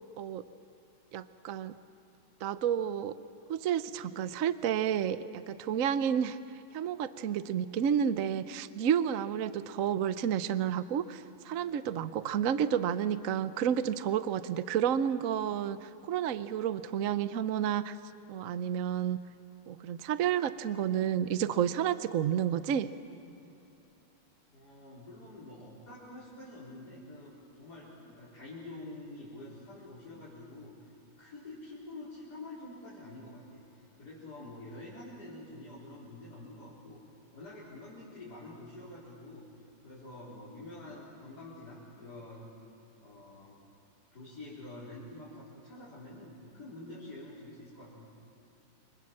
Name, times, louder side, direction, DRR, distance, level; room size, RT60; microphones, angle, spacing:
voice 1, 1.1-1.7 2.4-3.1 3.5-6.4 6.7-18.0 18.3-19.2 19.7-22.9, right 9 dB, 70° right, 13 dB, 0.8 m, -30 dB
voice 2, 24.5-37.0 37.3-39.4 39.8-42.5 43.0-43.6 44.1-48.1, left 2 dB, 45° left, -9 dB, 5.0 m, -47 dB
29.0 x 25.0 x 7.6 m, 2.9 s
omnidirectional pair, 2.3 m